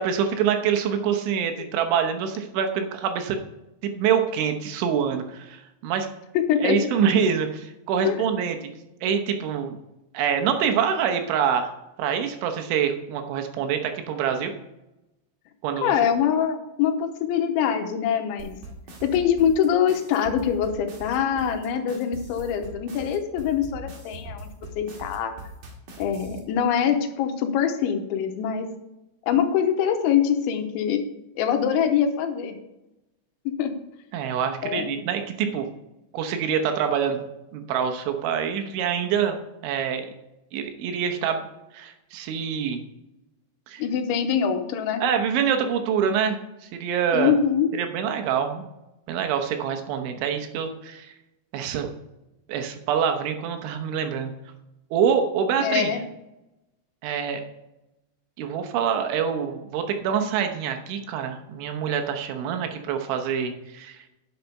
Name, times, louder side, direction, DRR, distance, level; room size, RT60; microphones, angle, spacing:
voice 1, 0.0-3.4 3.8-6.1 6.6-8.7 9.0-9.8 10.2-11.7 12.0-14.6 15.6-15.9 34.1-35.7 36.1-37.2 37.5-39.4 39.6-40.1 40.5-41.4 41.7-42.8 43.7-43.8 45.0-46.4 46.8-47.3 47.7-48.7 49.1-51.1 51.5-51.9 52.5-54.3 54.9-56.0 57.0-57.4 58.4-64.0, right 7 dB, 80° right, 6 dB, 3.4 m, -25 dB
voice 2, 6.3-6.8 8.0-8.2 15.8-18.6 19.0-24.5 24.8-25.3 26.0-28.7 29.3-31.1 31.4-32.6 33.5-33.7 34.6-35.0 43.8-45.0 47.1-47.7 55.6-56.0, left 8 dB, 85° left, 6 dB, 3.3 m, -24 dB
sound 1, 18.4-26.4, right 1 dB, 55° right, 2.8 m, -41 dB
10.5 x 6.6 x 5.5 m, 0.93 s
omnidirectional pair, 5.4 m